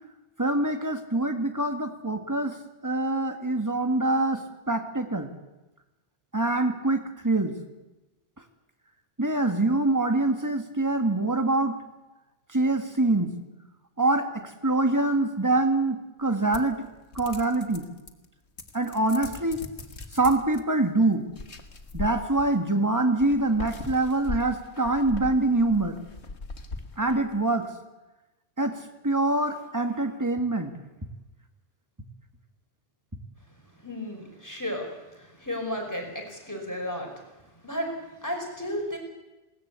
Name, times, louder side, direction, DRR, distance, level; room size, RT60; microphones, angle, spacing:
voice 1, 0.4-2.6 2.8-5.3 6.3-7.6 9.2-11.8 12.5-13.4 14.0-16.9 17.1-17.9 18.7-19.6 20.1-21.2 21.9-26.0 27.0-27.7 28.6-28.8 29.0-30.8, right 2 dB, 15° right, 6 dB, 2.0 m, -25 dB
sound 1, 16.5-18.3 18.6-20.6 21.3-22.7 23.2-27.5, left 3 dB, 80° left, 1.9 m, -39 dB
voice 2, 33.8-37.1 37.6-37.9 38.2-39.0, equal, 15° left, 1 dB, 5.3 m, -33 dB
20.5 x 18.5 x 8.4 m, 1.0 s
omnidirectional pair, 1.1 m